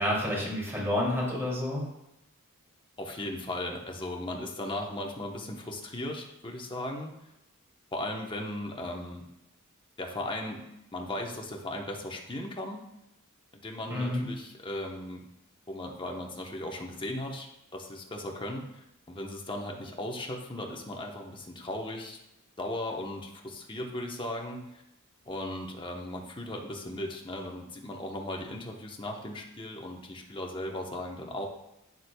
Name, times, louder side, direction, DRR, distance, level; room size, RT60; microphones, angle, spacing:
voice 1, 0.0-1.9 13.9-14.2, left 1 dB, 10° right, -5 dB, 2.9 m, -29 dB
voice 2, 3.0-7.1 7.9-9.2 10.0-10.6 10.9-12.8 13.6-15.2 15.7-22.2 22.6-24.8 25.3-31.5, left 1 dB, 25° left, 1 dB, 1.1 m, -37 dB
9.6 x 7.3 x 2.3 m, 0.89 s
head